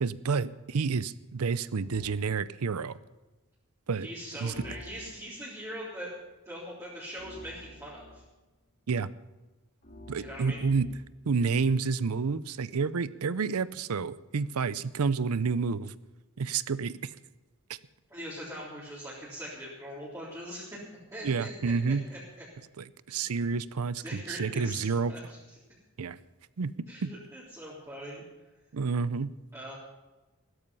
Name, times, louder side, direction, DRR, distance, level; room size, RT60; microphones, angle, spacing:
voice 1, 0.0-3.0 3.9-4.1 4.4-4.5 8.9-9.1 10.1-10.9 11.3-15.9 16.4-17.2 17.7-17.8 21.2-22.1 22.8-25.1 26.0-26.2 26.6-26.7 27.0-27.1 28.7-29.3, right 5 dB, 75° right, 17 dB, 0.6 m, -29 dB
sound 1, 1.8-2.3 4.5-5.4 7.2-8.3 9.8-11.2, left 1 dB, 40° left, 2.9 m, -49 dB
voice 2, 4.0-6.1 6.5-8.2 10.2-10.6 18.1-20.8 21.1-22.2 23.1-23.2 24.0-24.8 25.1-25.4 26.9-28.2 29.5-29.7, equal, 15° right, -9 dB, 3.6 m, -41 dB
16.0 x 13.0 x 5.5 m, 1.1 s
head